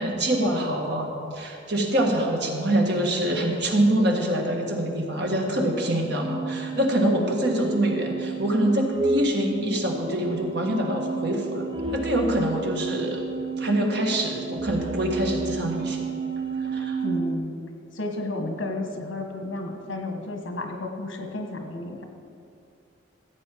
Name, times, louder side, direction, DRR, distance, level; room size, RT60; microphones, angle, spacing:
voice 1, 0.0-13.3 13.6-16.1 16.6-17.0, right 1 dB, 60° right, 1 dB, 1.7 m, -25 dB
sound 1, 6.2-17.4, right 4 dB, 25° right, 0.5 m, -31 dB
voice 2, 17.0-17.6 17.9-22.0, left 2 dB, 75° left, 3 dB, 1.5 m, -32 dB
14.5 x 8.5 x 4.7 m, 2.5 s
head